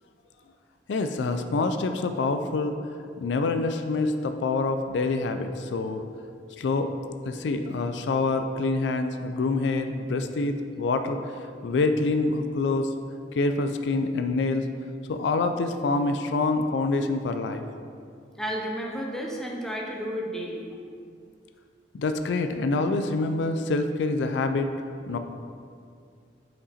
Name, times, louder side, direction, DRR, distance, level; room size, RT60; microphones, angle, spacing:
voice 1, 0.9-2.8 3.2-6.0 6.6-7.0 7.2-11.2 11.6-12.9 13.3-14.7 15.1-17.6 21.9-24.7 25.1-25.2, left 3 dB, 75° left, 8 dB, 0.4 m, -26 dB
voice 2, 18.4-20.7, equal, 5° left, -2 dB, 0.7 m, -32 dB
5.7 x 5.1 x 4.1 m, 2.3 s
head